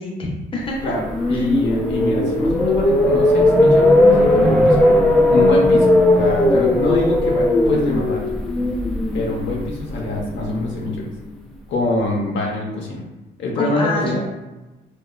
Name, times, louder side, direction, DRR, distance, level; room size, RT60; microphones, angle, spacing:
voice 1, 0.0-0.9 1.3-1.4 13.6-14.2, left 1 dB, 25° left, -2 dB, 0.7 m, -26 dB
voice 2, 0.8-4.8 5.3-5.9 6.1-8.2 9.1-11.1 11.7-13.0 13.4-14.2, left 2 dB, 70° left, -1 dB, 0.6 m, -24 dB
sound 1, 0.8-10.9, left 1 dB, ahead, 0.3 m, -17 dB
2.8 x 2.2 x 2.3 m, 1.1 s
cardioid pair, 90°, 20 cm